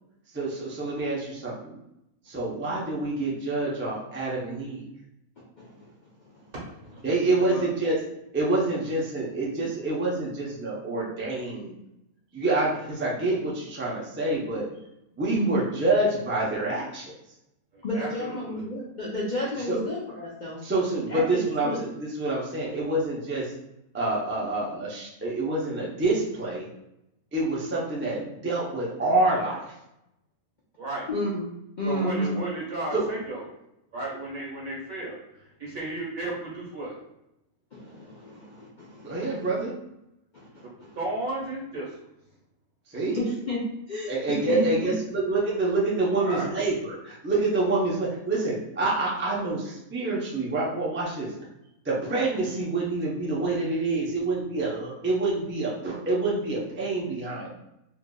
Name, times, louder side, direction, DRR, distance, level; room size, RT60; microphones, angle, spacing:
voice 1, 0.3-1.8 2.3-4.8 7.0-8.0 8.3-11.7 12.3-14.7 15.2-17.1 19.7-19.8 20.6-21.9 22.2-23.5 23.9-26.6 27.3-29.6 32.9-33.1 39.0-39.7 42.9-43.2 44.1-51.3 51.8-57.5, right 2 dB, 15° right, -4 dB, 0.5 m, -27 dB
voice 2, 6.5-7.7 17.7-18.6 30.8-31.1 31.8-33.4 33.9-35.2 35.6-36.9 40.9-41.9 46.2-46.5, right 2 dB, 70° right, -5 dB, 1.8 m, -34 dB
voice 3, 15.3-15.6 17.8-20.6 21.1-21.8 31.1-31.5 31.8-32.4 37.7-39.4 40.3-41.0 42.9-44.9, left 1 dB, 50° left, -5 dB, 0.5 m, -32 dB
4.4 x 2.5 x 2.2 m, 0.85 s
omnidirectional pair, 1.5 m